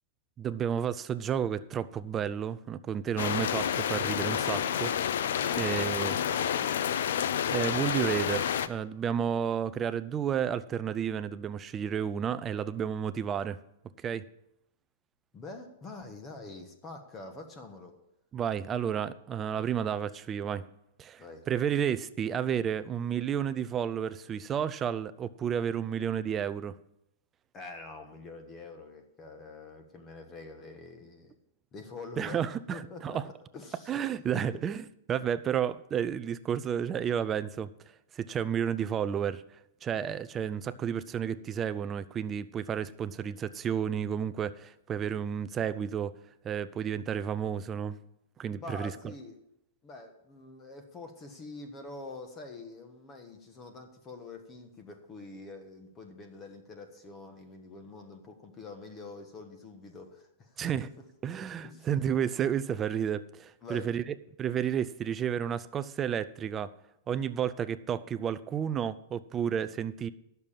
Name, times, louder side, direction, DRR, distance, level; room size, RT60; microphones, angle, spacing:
voice 1, 0.4-4.9 5.6-6.2 7.5-13.6 14.0-14.2 18.3-20.7 21.0-26.8 32.2-33.3 33.9-37.7 38.1-46.2 46.4-48.0 48.4-49.1 60.6-60.9 61.2-66.7 67.1-70.1, right 8 dB, 15° right, 14 dB, 0.4 m, -31 dB
sound 1, 3.2-8.7, left 9 dB, 70° left, 0.6 m, -29 dB
voice 2, 5.4-6.8 15.3-17.9 21.2-21.4 27.5-31.3 31.7-32.4 32.7-33.9 34.3-34.6 48.5-49.4 49.8-60.6 61.6-61.9 63.6-63.9, left 3 dB, 20° left, 6 dB, 1.2 m, -45 dB
10.5 x 6.8 x 7.3 m, 0.81 s
supercardioid pair, 165°, 0 cm